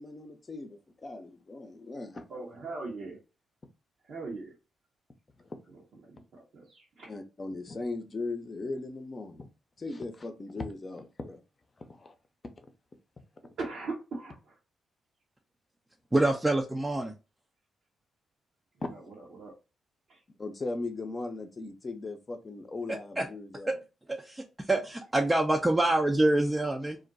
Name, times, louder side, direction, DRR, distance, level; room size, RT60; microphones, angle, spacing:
voice 1, 0.0-2.2 5.4-5.6 7.1-9.5 9.8-11.4 11.8-12.1 18.8-18.9 20.4-23.8, left 3 dB, 40° left, 0.7 m, -38 dB
voice 2, 2.3-3.2 4.0-4.5 5.7-7.2 13.6-14.6 18.8-19.5 20.1-20.2 24.9-25.0, right 3 dB, 65° right, 0.9 m, -41 dB
voice 3, 16.1-17.1 23.2-23.3 23.7-23.8 24.1-27.0, right 2 dB, 20° right, 0.5 m, -26 dB
2.5 x 2.2 x 3.9 m
hypercardioid pair, 45°, 0 cm